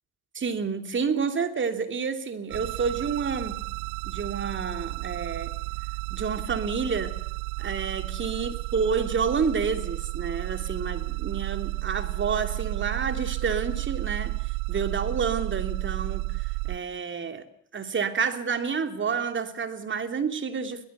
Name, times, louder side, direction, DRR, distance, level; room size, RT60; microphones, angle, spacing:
voice 1, 0.3-3.6 4.0-5.5 6.1-7.2 7.6-14.3 14.7-17.4 17.7-20.9, right 6 dB, 25° right, 9 dB, 3.0 m, -29 dB
sound 1, 2.5-16.8, right 29 dB, 55° right, 0.9 m, -32 dB
22.0 x 19.5 x 8.2 m, 0.70 s
figure-of-eight pair, 70°, 42 cm